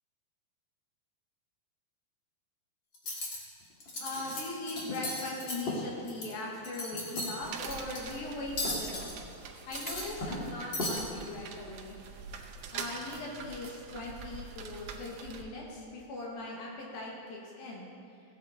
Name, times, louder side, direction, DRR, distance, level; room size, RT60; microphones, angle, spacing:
Cutlery silverware, 2.9-3.4 3.8-4.4 4.7-6.3 6.6-7.3 7.7-8.0 8.6-9.1 9.6-10.4 10.7-11.0, left 1 dB, 40° left, 2.0 m, -35 dB
voice 1, 4.0-9.2 9.7-12.0 12.7-17.9, left 2 dB, 80° left, -3 dB, 3.5 m, -40 dB
sound 1, 7.4-15.4, right 5 dB, 85° right, 1.4 m, -44 dB
15.5 x 9.4 x 4.2 m, 2.6 s
omnidirectional pair, 4.2 m